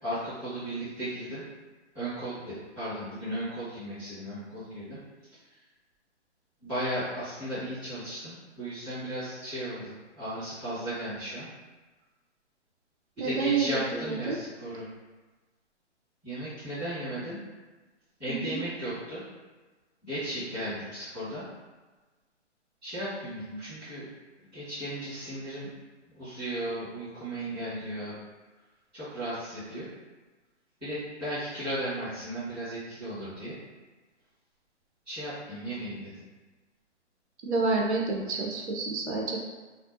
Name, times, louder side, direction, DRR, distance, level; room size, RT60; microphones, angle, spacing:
voice 1, 0.0-1.4 1.9-5.0 6.6-11.5 13.2-14.9 16.2-17.4 18.2-19.2 20.0-21.5 22.8-24.0 24.5-25.7 26.1-28.1 28.9-29.9 30.8-33.6 35.0-36.2, right 1 dB, ahead, -20 dB, 0.4 m, -35 dB
voice 2, 13.2-14.4 18.3-18.6 37.4-39.4, right 4 dB, 65° right, 0 dB, 0.6 m, -29 dB
2.4 x 2.0 x 2.5 m, 1.3 s
hypercardioid pair, 150°, 36 cm